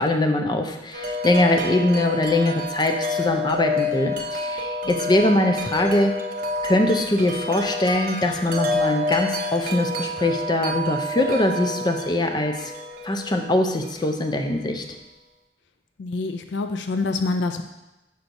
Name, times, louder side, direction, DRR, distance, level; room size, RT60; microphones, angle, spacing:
voice 1, 0.0-6.1 6.6-12.7 13.0-14.8, left 1 dB, 25° left, 4 dB, 0.5 m, -22 dB
Wind chime, 0.9-14.9, left 2 dB, 50° right, 0.7 m, -29 dB
voice 2, 16.0-17.6, left 3 dB, 85° left, 7 dB, 0.4 m, -26 dB
6.8 x 6.1 x 2.6 m, 0.97 s
head